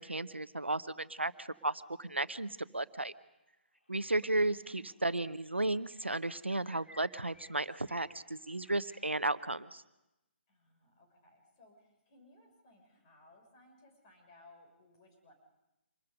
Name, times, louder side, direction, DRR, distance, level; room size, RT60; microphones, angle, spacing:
voice 1, 0.0-3.1 3.9-9.8, right 2 dB, 85° right, 15 dB, 0.9 m, -34 dB
sound 1, 3.3-3.4 3.7-9.2, left 1 dB, 85° left, 2.8 m, -62 dB
voice 2, 3.9-5.1 10.5-15.3, left 2 dB, 30° left, 2 dB, 6.4 m, -62 dB
26.5 x 21.0 x 5.3 m, 0.94 s
figure-of-eight pair, 140°, 6 cm